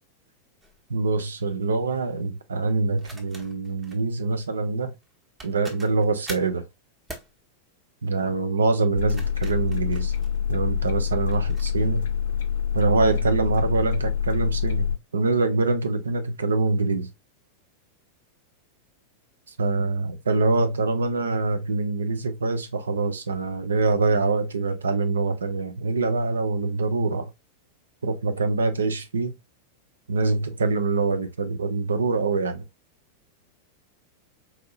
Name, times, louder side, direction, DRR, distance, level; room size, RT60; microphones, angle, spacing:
sound 1, 0.6-0.8 3.0-4.0 5.0-5.1 5.4-6.6 7.1-7.3 8.9-10.7 11.3-11.7, right 1 dB, 15° right, 0.9 m, -43 dB
voice 1, 0.9-4.9 5.4-6.6 8.0-10.1 10.5-12.0 12.7-14.9 15.1-17.1 19.6-27.3 28.0-29.3 30.1-32.6, right 3 dB, 70° right, 0.5 m, -24 dB
sound 2, 8.9-15.0, left 8 dB, 60° left, 0.4 m, -26 dB
4.1 x 2.6 x 2.4 m
figure-of-eight pair, 90°, 0 cm